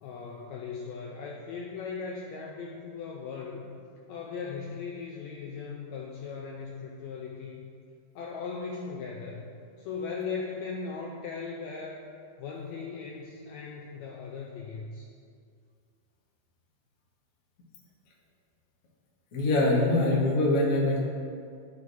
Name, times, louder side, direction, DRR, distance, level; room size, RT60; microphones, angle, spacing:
voice 1, 0.0-3.7 4.1-7.7 8.1-9.4 9.8-12.1 12.4-15.1, left 5 dB, 90° left, -2 dB, 1.6 m, -38 dB
voice 2, 19.3-21.0, left 2 dB, 65° left, -5 dB, 0.8 m, -23 dB
13.0 x 4.7 x 2.7 m, 2.3 s
omnidirectional pair, 3.8 m